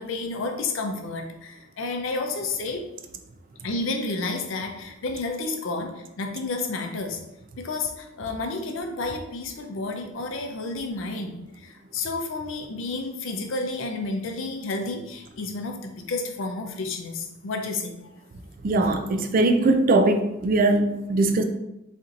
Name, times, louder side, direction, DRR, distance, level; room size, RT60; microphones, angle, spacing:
voice 1, 0.0-2.9 3.6-7.2 7.6-18.0, left 3 dB, 65° left, 4 dB, 0.5 m, -31 dB
voice 2, 18.6-21.4, right 2 dB, 40° right, 7 dB, 0.3 m, -21 dB
4.3 x 2.6 x 2.5 m, 0.89 s
head